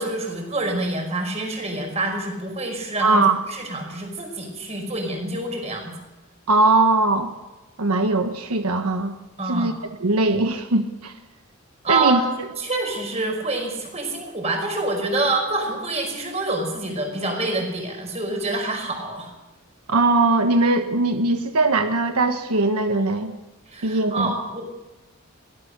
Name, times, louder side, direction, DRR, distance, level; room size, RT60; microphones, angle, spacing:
voice 1, 0.0-3.2 3.5-5.9 9.4-9.7 11.8-12.2 12.6-19.3 23.7-24.6, right 2 dB, 30° right, 3 dB, 5.6 m, -26 dB
voice 2, 3.0-3.4 6.5-7.3 7.8-9.1 9.5-9.7 10.0-11.1 11.9-12.2 19.9-23.3 23.8-24.3, right 2 dB, 90° right, 6 dB, 1.4 m, -20 dB
22.5 x 17.5 x 6.7 m, 1.1 s
head